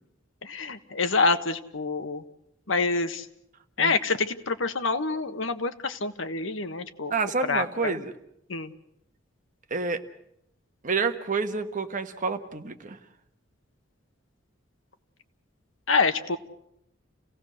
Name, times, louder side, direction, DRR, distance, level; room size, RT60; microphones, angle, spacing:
voice 1, 0.4-2.2 2.7-3.3 3.8-7.1 7.4-8.0 8.5-8.7 15.9-16.4, left 4 dB, 75° left, 9 dB, 1.4 m, -27 dB
voice 2, 7.1-8.1 9.7-10.0 10.8-13.0, right 4 dB, 40° right, 7 dB, 1.4 m, -28 dB
29.5 x 17.5 x 6.5 m, 0.77 s
head